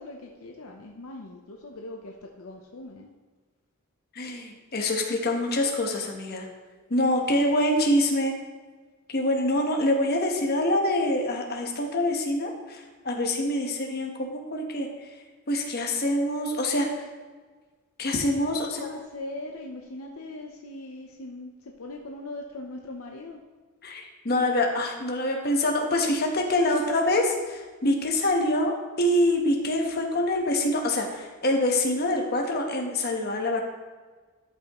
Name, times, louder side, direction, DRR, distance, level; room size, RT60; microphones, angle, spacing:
voice 1, 0.0-3.1 18.4-23.4, left 2 dB, 70° left, 1 dB, 0.7 m, -40 dB
voice 2, 4.1-6.5 6.9-8.3 9.1-14.9 15.5-17.1 18.0-18.9 23.8-33.6, left 1 dB, 45° left, 1 dB, 1.1 m, -25 dB
12.0 x 5.5 x 3.0 m, 1.4 s
head